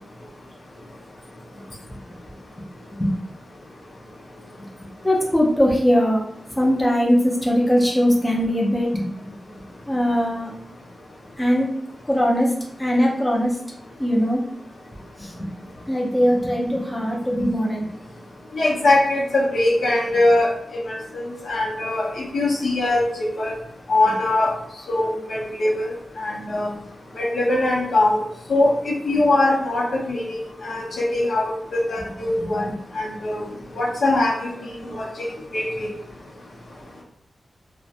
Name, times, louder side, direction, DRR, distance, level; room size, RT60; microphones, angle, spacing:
voice 1, 5.0-6.2 6.6-9.3 9.9-10.5 11.4-11.7 12.1-12.5 12.8-13.6 14.0-14.4 15.2-15.5 15.9-17.8 32.4-32.5, equal, 10° left, -2 dB, 0.5 m, -20 dB
voice 2, 18.5-23.5 23.9-24.5 24.9-26.7 27.2-28.2 28.5-33.4 33.7-34.5 34.9-35.1 35.5-35.9, left 2 dB, 75° left, -3 dB, 0.7 m, -22 dB
2.5 x 2.1 x 2.7 m, 0.75 s
wide cardioid pair, 150°, 0 cm